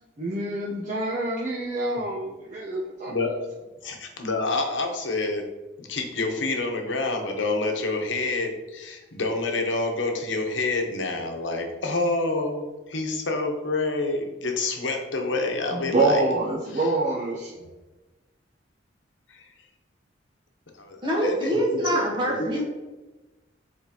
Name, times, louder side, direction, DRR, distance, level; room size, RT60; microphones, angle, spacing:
voice 1, 0.2-3.2 15.7-17.5, right 2 dB, 40° right, -7 dB, 0.9 m, -26 dB
voice 2, 3.8-5.5 5.8-16.2 16.7-16.9 17.6-17.7 19.3-19.4 21.2-22.0 22.4-22.5, left 3 dB, 85° left, 3 dB, 1.0 m, -27 dB
voice 3, 21.0-22.6, equal, 25° right, -3 dB, 1.4 m, -25 dB
7.4 x 4.3 x 3.0 m, 1.1 s
head